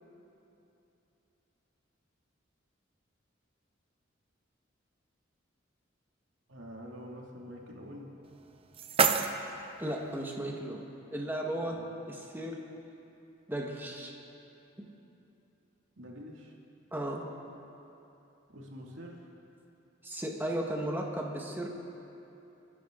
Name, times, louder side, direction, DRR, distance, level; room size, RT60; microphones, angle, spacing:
voice 1, 6.5-8.1 11.6-11.8 16.0-16.5 18.5-19.2, equal, 80° right, -2 dB, 2.4 m, -46 dB
sound 1, 8.2-10.2, right 5 dB, 30° right, 0.6 m, -31 dB
voice 2, 9.8-12.6 13.5-14.1 14.8-14.9 16.9-17.3 20.0-21.7, right 1 dB, 10° right, 0 dB, 1.4 m, -35 dB
29.0 x 10.0 x 3.8 m, 2.9 s
head